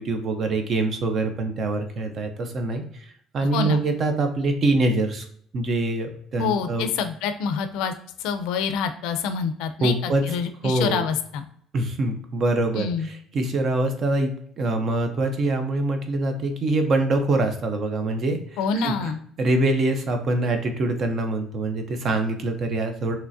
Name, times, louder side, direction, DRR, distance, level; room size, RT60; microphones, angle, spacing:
voice 1, 0.0-5.3 5.5-6.9 9.8-10.2 10.6-11.1 11.7-19.1 19.4-23.2, right 2 dB, 30° right, 6 dB, 0.6 m, -24 dB
voice 2, 3.5-3.8 6.4-7.9 8.2-11.4 12.8-13.1 18.6-19.2, left 6 dB, 85° left, 9 dB, 0.5 m, -26 dB
5.9 x 3.2 x 2.6 m, 0.64 s
cardioid pair, 175°, 0 cm